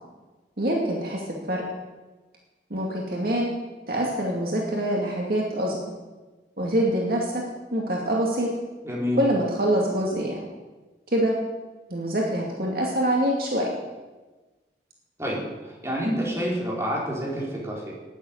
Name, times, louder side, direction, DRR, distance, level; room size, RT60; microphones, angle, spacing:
voice 1, 0.6-1.2 1.5-1.6 2.7-3.5 3.9-5.8 6.6-7.4 7.7-8.5 9.2-10.4 11.1-11.3 11.9-13.7, right 1 dB, 55° right, -2 dB, 2.4 m, -25 dB
voice 2, 8.8-9.2 15.2-17.9, equal, 15° right, -5 dB, 4.3 m, -28 dB
12.0 x 9.7 x 9.4 m, 1.2 s
head